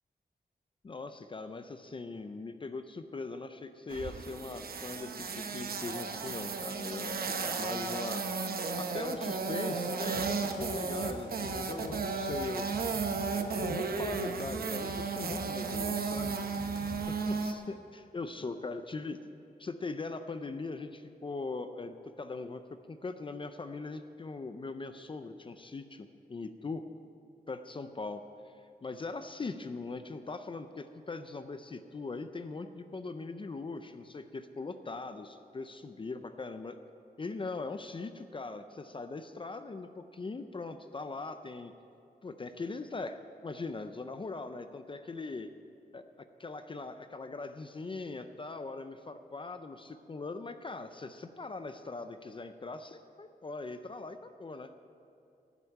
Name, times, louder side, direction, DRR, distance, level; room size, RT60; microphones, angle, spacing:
voice 1, 0.8-8.3 8.8-12.7 13.3-16.3 17.1-19.3 19.6-26.8 27.5-28.2 28.8-36.8 37.2-41.7 42.2-45.5 45.9-46.0 46.4-54.7, left 3 dB, 30° left, 9 dB, 0.5 m, -40 dB
sound 1, 3.9-17.5, right 4 dB, 70° right, 0.9 m, -34 dB
sound 2, 10.1-17.0, left 2 dB, 85° left, 1.4 m, -47 dB
12.0 x 8.1 x 8.9 m, 2.6 s
wide cardioid pair, 165°, 16 cm